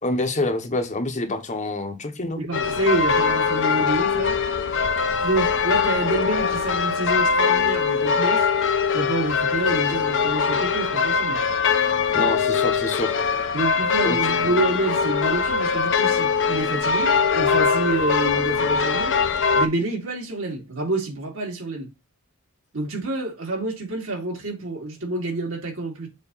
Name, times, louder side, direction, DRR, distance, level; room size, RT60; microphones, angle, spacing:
voice 1, 0.0-2.4 12.1-13.2 14.0-14.5, left 2 dB, 35° left, 1.0 m, -27 dB
voice 2, 2.4-4.4 5.2-8.5 8.9-11.4 13.5-19.1 19.5-21.9 22.7-26.1, right 2 dB, 60° right, 2.9 m, -28 dB
sound 1, 2.5-19.7, left 5 dB, 55° left, 0.8 m, -22 dB
7.2 x 3.1 x 5.5 m
head